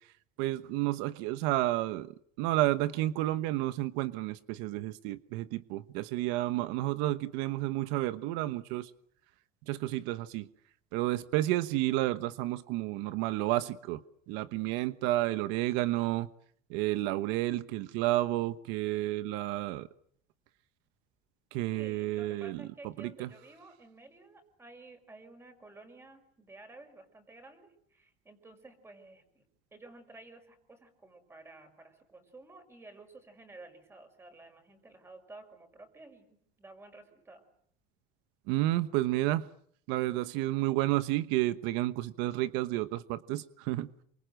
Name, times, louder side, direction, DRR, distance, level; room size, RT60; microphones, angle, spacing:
voice 1, 0.4-2.1 2.4-8.9 9.7-10.5 10.9-14.0 14.3-16.3 16.7-19.9 21.5-22.6 23.0-23.3 38.5-39.4 39.9-43.9, right 16 dB, 85° right, 13 dB, 1.2 m, -31 dB
voice 2, 21.8-29.4 29.7-37.4, right 2 dB, 15° right, 7 dB, 5.8 m, -53 dB
28.0 x 25.0 x 7.8 m, 0.65 s
cardioid pair, 150°, 18 cm